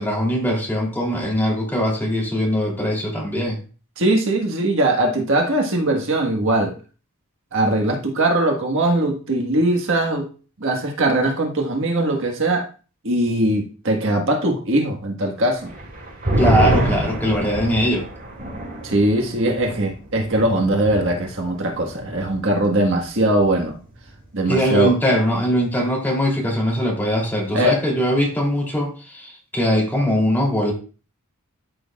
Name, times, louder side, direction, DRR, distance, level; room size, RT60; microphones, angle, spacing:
voice 1, 0.0-3.6 16.4-18.1 24.5-30.7, equal, 10° left, -2 dB, 3.2 m, -21 dB
voice 2, 4.0-6.7 7.5-10.3 10.6-12.7 13.0-15.7 18.8-23.8 24.3-24.9 27.5-27.8, right 1 dB, 60° right, 2 dB, 1.6 m, -20 dB
sound 1, 15.7-22.6 22.9-23.0 23.4-23.8, right 1 dB, 40° right, 5.0 m, -26 dB
13.0 x 6.4 x 2.4 m, 0.36 s
head